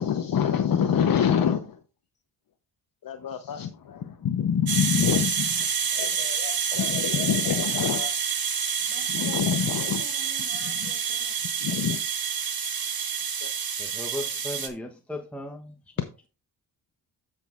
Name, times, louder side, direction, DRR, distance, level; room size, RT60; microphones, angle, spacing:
voice 1, 0.0-1.8 3.0-8.1 9.1-10.0 10.6-10.9 11.6-12.1 13.4-13.5 16.0-16.1, left 8 dB, 50° left, 0.9 m, -26 dB
sound 1, 4.7-14.7, right 7 dB, 55° right, 1.6 m, -28 dB
voice 2, 8.6-11.4, left 2 dB, 35° left, 3.2 m, -47 dB
voice 3, 13.8-15.9, left 1 dB, 5° left, 0.9 m, -36 dB
13.5 x 6.2 x 2.4 m
cardioid pair, 85°, 42 cm